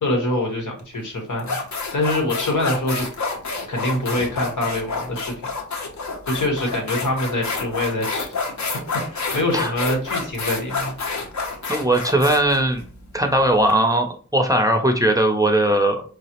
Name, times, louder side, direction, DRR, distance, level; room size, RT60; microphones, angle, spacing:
voice 1, 0.0-1.6 1.9-3.1 3.7-5.3 6.3-8.4 8.7-8.8 9.1-10.9, left 1 dB, 85° left, 1 dB, 1.0 m, -24 dB
sound 1, 0.8-0.9 1.4-13.7, left 4 dB, 65° left, 0.7 m, -28 dB
voice 2, 11.7-12.8 13.1-14.1 14.3-16.0, right 1 dB, 10° right, 4 dB, 0.5 m, -19 dB
4.7 x 2.0 x 2.8 m, 0.41 s
wide cardioid pair, 80°, 30 cm